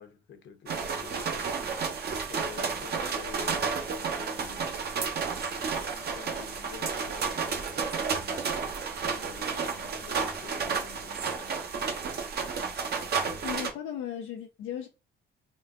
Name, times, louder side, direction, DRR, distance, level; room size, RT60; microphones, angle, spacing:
voice 1, 0.0-1.9 2.3-4.9 5.9-8.6 9.0-11.6, left 6 dB, 65° left, 0.9 m, -48 dB
sound 1, 0.7-13.7, right 5 dB, 55° right, 0.8 m, -31 dB
voice 2, 13.4-14.9, left 10 dB, 90° left, 0.5 m, -36 dB
3.8 x 2.3 x 3.6 m
cardioid pair, 90°, 20 cm